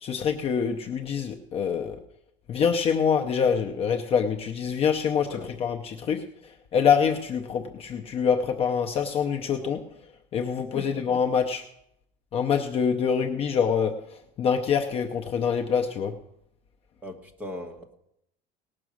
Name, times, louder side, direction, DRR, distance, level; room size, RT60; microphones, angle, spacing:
voice 1, 0.0-2.0 2.5-6.2 6.7-9.8 10.3-11.6 12.3-16.1, left 7 dB, 30° left, 4 dB, 0.6 m, -25 dB
voice 2, 17.0-17.9, left 2 dB, 10° right, 1 dB, 1.1 m, -38 dB
18.0 x 6.2 x 6.2 m, 0.78 s
cardioid pair, 180°, 21 cm